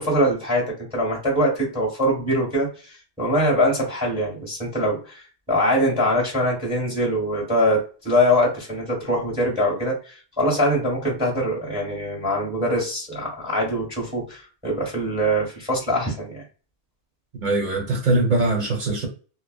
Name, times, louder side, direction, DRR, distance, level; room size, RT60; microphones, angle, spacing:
voice 1, 0.0-2.7 3.2-5.2 5.5-16.4, equal, 5° right, 1.3 m, -23 dB
voice 2, 17.4-19.1, right 2 dB, 50° right, 1.1 m, -21 dB
2.4 x 2.2 x 2.4 m
omnidirectional pair, 1.1 m